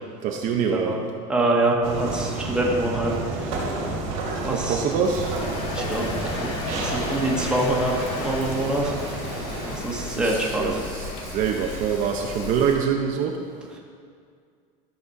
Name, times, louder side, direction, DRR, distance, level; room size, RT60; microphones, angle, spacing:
voice 1, 0.2-1.0 3.6-4.0 4.5-5.4 9.9-13.4, right 7 dB, 45° right, 2 dB, 0.7 m, -25 dB
voice 2, 1.3-3.5 4.4-4.8 5.7-8.0 8.2-8.9 9.7-10.8, right 2 dB, 5° right, -2 dB, 1.2 m, -25 dB
sound 1, 1.8-9.8, right 2 dB, 80° right, 2.2 m, -31 dB
Domestic sounds home sounds, 4.9-11.6, left 4 dB, 85° left, 1.3 m, -37 dB
Rain, 5.0-12.7, left 3 dB, 50° left, 2.0 m, -37 dB
12.5 x 4.2 x 5.3 m, 2.1 s
cardioid pair, 155°, 18 cm